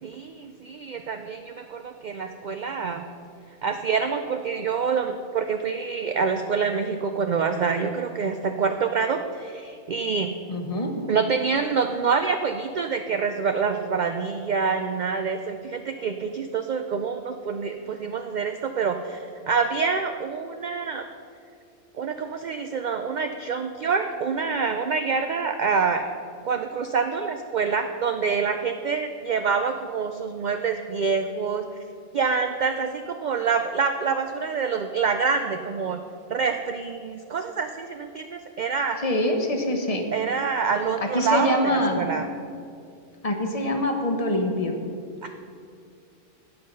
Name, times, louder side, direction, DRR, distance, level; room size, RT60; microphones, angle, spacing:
voice 1, 0.0-3.0 3.6-10.3 11.1-21.0 22.0-26.0 26.4-31.6 32.1-36.0 36.3-39.0 40.1-42.2 45.2-45.3, right 5 dB, 65° right, 6 dB, 0.4 m, -26 dB
voice 2, 10.5-10.9 39.0-40.0 41.0-42.0 43.2-44.8, left 1 dB, 30° left, 4 dB, 1.1 m, -24 dB
16.5 x 5.7 x 5.4 m, 2.4 s
omnidirectional pair, 1.3 m